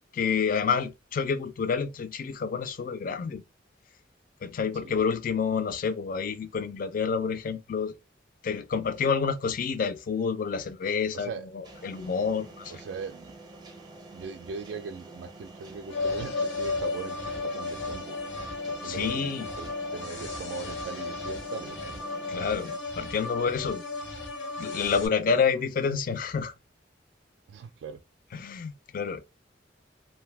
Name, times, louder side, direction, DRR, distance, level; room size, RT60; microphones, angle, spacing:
voice 1, 0.1-3.4 4.4-7.9 8.4-12.7 18.8-19.5 22.3-23.8 24.6-26.5 28.3-29.2, left 6 dB, 50° left, 0.4 m, -28 dB
voice 2, 11.1-11.5 12.7-13.3 14.1-18.2 18.7-22.0 25.5-25.6 27.5-28.0, right 5 dB, 70° right, 0.3 m, -40 dB
sound 1, 11.6-22.8, right 2 dB, 25° right, 0.6 m, -47 dB
sound 2, 15.9-25.1, left 3 dB, 90° left, 0.9 m, -34 dB
2.7 x 2.1 x 3.2 m
head